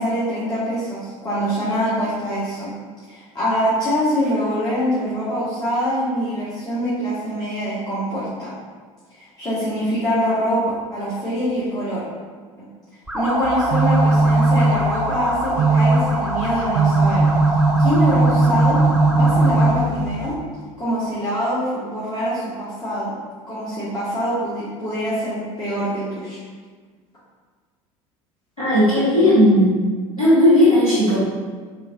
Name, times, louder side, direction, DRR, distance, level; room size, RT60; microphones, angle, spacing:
voice 1, 0.0-2.7 3.1-8.5 9.2-10.6 10.9-12.0 13.1-17.3 17.8-18.8 19.1-20.4 20.8-23.1 23.5-26.4, equal, 20° left, -11 dB, 1.0 m, -24 dB
sound 1, 13.1-19.9, right 2 dB, 5° right, 0.4 m, -26 dB
sound 2, 13.4-20.3, right 2 dB, 60° right, 0.4 m, -18 dB
voice 2, 28.6-29.8 30.2-31.2, left 1 dB, 85° left, -12 dB, 1.4 m, -15 dB
3.4 x 2.7 x 2.4 m, 1.5 s
figure-of-eight pair, 65°, 18 cm